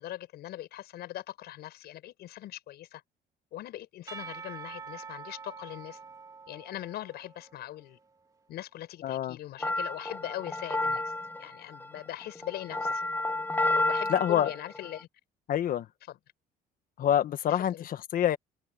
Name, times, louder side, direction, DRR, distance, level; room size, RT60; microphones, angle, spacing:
voice 1, 0.0-3.0 3.5-6.0 6.5-8.0 8.5-11.1 11.4-13.0 13.7-15.1 16.1-16.2 17.5-17.9, left 14 dB, 75° left, 7.7 m, -41 dB
Percussion / Church bell, 4.1-7.9, right 5 dB, 20° right, 2.4 m, -45 dB
voice 2, 9.0-9.4 14.1-14.5 15.5-15.9 17.0-18.4, left 10 dB, 55° left, 1.4 m, -26 dB
sound 1, 9.6-15.0, left 2 dB, 10° left, 0.8 m, -31 dB
open air
cardioid pair, 110°, 17 cm